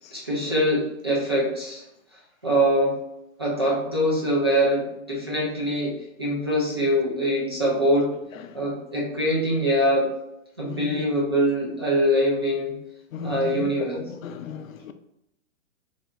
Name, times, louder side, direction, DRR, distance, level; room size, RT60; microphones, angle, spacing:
voice 1, 0.1-1.8 2.4-3.0 3.4-8.1 8.5-10.1 10.6-12.7 13.2-14.0, equal, 20° right, 0.4 m, -23 dB
voice 2, 10.7-11.0 13.1-13.7 14.2-14.9, left 6 dB, 80° left, 0.5 m, -35 dB
3.3 x 2.4 x 3.6 m
hypercardioid pair, 170°, 40 cm